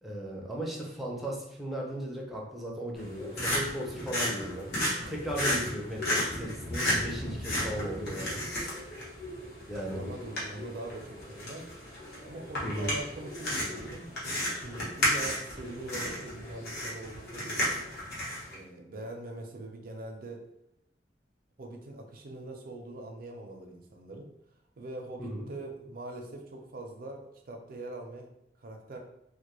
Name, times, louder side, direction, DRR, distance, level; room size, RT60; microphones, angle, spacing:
voice 1, 0.0-4.7 5.1-8.4 8.7-8.8 9.7-10.1 12.6-12.9 25.2-25.5, equal, ahead, -3 dB, 0.5 m, -36 dB
sound 1, 2.9-18.5, equal, 65° left, 0.9 m, -34 dB
voice 2, 9.8-11.6 12.2-17.8 18.5-20.4 21.6-24.3 24.8-28.3 28.6-29.0, right 2 dB, 55° right, 2 dB, 0.5 m, -43 dB
2.2 x 2.1 x 3.0 m, 0.79 s
head